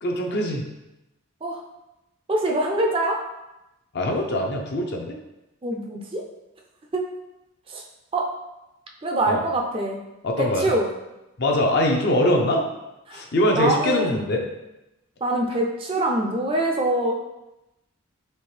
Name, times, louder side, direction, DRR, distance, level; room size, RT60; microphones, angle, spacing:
voice 1, 0.0-0.6 3.9-5.2 9.3-9.4 10.2-10.7 11.4-12.6 13.1-14.4, left 1 dB, 50° left, 1 dB, 0.6 m, -22 dB
voice 2, 2.3-3.2 5.6-6.2 6.9-7.0 7.7-7.8 8.1-8.3 9.0-10.0 10.4-10.9 13.1-13.2 13.6-14.3 15.2-17.1, right 1 dB, 25° right, 0 dB, 0.4 m, -24 dB
4.3 x 3.6 x 3.2 m, 0.95 s
head